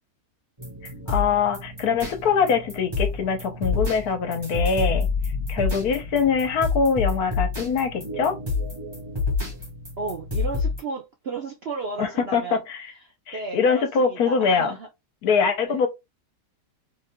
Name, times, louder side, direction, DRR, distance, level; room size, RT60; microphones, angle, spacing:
sound 1, 0.6-10.8, left 4 dB, 15° right, 2.1 m, -28 dB
voice 1, 1.1-5.1 5.5-8.4 12.0-12.8 13.3-14.8 15.2-15.9, left 5 dB, 70° left, 1.3 m, -23 dB
voice 2, 10.0-12.6 13.0-14.9 15.3-15.9, right 3 dB, 60° right, 0.6 m, -34 dB
4.2 x 3.6 x 2.2 m
omnidirectional pair, 1.7 m